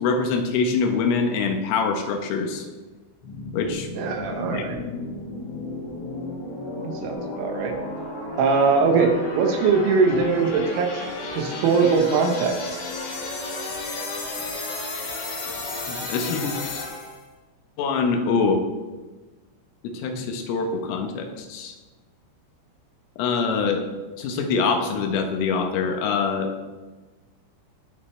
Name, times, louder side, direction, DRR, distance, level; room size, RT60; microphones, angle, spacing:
voice 1, 0.0-2.7 3.5-3.9 4.5-4.7 15.9-16.5 17.8-18.6 19.9-21.8 23.2-23.8 24.2-26.5, left 4 dB, 80° left, 4 dB, 3.8 m, -24 dB
sound 1, 3.2-17.2, left 2 dB, 55° left, 3.4 m, -33 dB
voice 2, 4.0-4.8 6.8-7.8 8.4-11.0 11.4-12.8, right 4 dB, 75° right, 3 dB, 3.6 m, -21 dB
18.5 x 6.7 x 3.3 m, 1.2 s
omnidirectional pair, 5.9 m